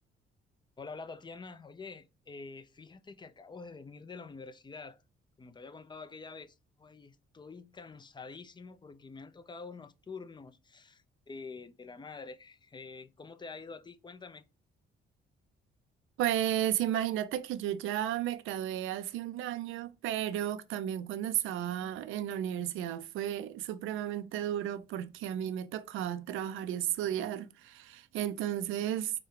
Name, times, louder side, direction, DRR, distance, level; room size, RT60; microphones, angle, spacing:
voice 1, 0.8-5.0 5.4-14.5, left 4 dB, 25° left, 0.6 m, -47 dB
voice 2, 16.2-29.1, right 11 dB, 90° right, 0.5 m, -33 dB
4.9 x 2.3 x 4.7 m
cardioid pair, 90°, 20 cm